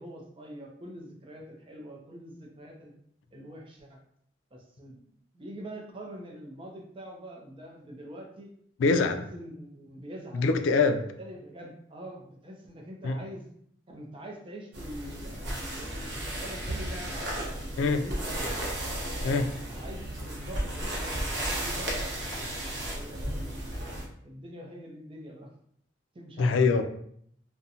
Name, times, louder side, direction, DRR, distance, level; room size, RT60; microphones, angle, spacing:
voice 1, 0.0-2.9 3.3-4.0 4.5-5.0 5.3-8.5 9.1-10.5 11.2-13.4 13.9-17.6 18.0-18.4 19.1-19.4 19.8-22.1 22.6-22.7 23.0-23.5 24.2-25.5 26.1-26.6, right 1 dB, 30° right, 1 dB, 0.5 m, -44 dB
voice 2, 8.8-9.2 10.3-11.1 13.0-13.2 17.8-18.0 19.2-19.5 26.4-26.8, left 4 dB, 85° left, 8 dB, 0.3 m, -24 dB
sound 1, 14.7-24.0, right 1 dB, 65° right, 0.7 m, -34 dB
2.4 x 2.1 x 2.7 m, 0.66 s
head